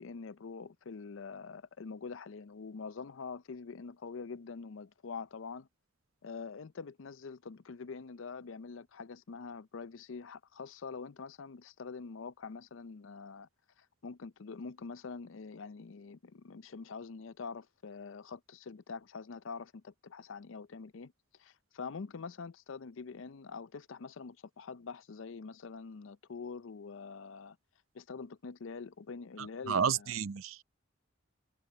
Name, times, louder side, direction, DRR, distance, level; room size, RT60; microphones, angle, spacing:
voice 1, 0.0-5.7 6.2-13.5 13.8-21.1 21.4-27.6 27.9-30.1, left 5 dB, 70° left, 0.5 m, -45 dB
voice 2, 29.7-30.6, right 7 dB, 85° right, 0.6 m, -31 dB
head